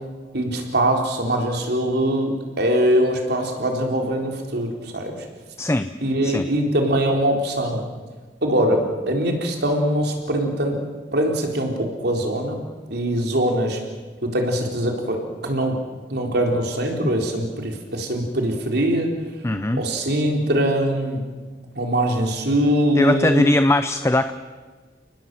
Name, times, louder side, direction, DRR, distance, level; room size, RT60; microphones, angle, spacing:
voice 1, 0.3-2.3 2.6-5.2 6.0-7.8 8.4-10.8 11.1-12.6 12.9-13.8 14.2-15.2 15.4-15.8 16.1-19.1 19.8-21.2 21.8-23.5, right 1 dB, 65° right, 2 dB, 4.0 m, -22 dB
voice 2, 5.6-5.9 6.2-6.5 19.4-19.8 23.0-24.3, left 1 dB, 15° left, 10 dB, 0.6 m, -20 dB
29.5 x 19.5 x 7.8 m, 1.4 s
head